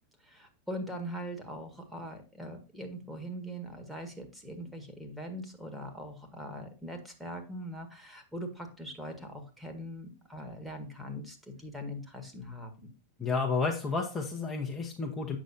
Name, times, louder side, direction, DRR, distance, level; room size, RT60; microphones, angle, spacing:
voice 1, 0.2-12.9, equal, 5° right, 3 dB, 1.7 m, -41 dB
voice 2, 13.2-15.4, left 4 dB, 15° left, 0 dB, 1.1 m, -31 dB
8.3 x 6.2 x 2.7 m, 0.35 s
figure-of-eight pair, 95°, 0 cm